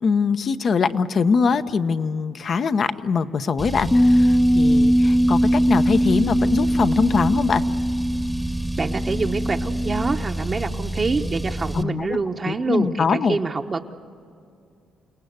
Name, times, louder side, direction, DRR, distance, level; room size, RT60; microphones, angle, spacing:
voice 1, 0.0-7.6 11.7-12.2 12.4-13.4, left 5 dB, 50° left, 10 dB, 0.9 m, -22 dB
Car, 3.6-11.8, right 1 dB, ahead, 1.1 m, -29 dB
Bass guitar, 3.9-10.2, equal, 20° left, 0.7 m, -20 dB
voice 2, 8.8-13.9, right 4 dB, 35° right, 3 dB, 1.0 m, -26 dB
29.0 x 19.0 x 8.1 m, 2.5 s
cardioid pair, 90°, 0 cm